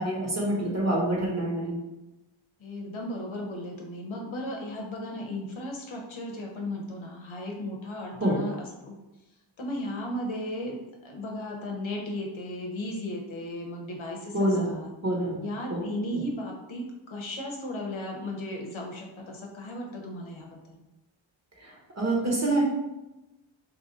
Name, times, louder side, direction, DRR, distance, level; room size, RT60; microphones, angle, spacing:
voice 1, 0.0-1.8 8.2-8.4 14.3-15.4 15.7-15.8 16.1-16.2 21.6-22.6, right 1 dB, 35° right, -3 dB, 1.2 m, -27 dB
voice 2, 2.6-8.6 8.8-9.0 9.6-14.9 15.4-20.8, left 1 dB, 75° left, 0 dB, 0.8 m, -35 dB
2.9 x 2.6 x 3.9 m, 0.99 s
wide cardioid pair, 55°, 48 cm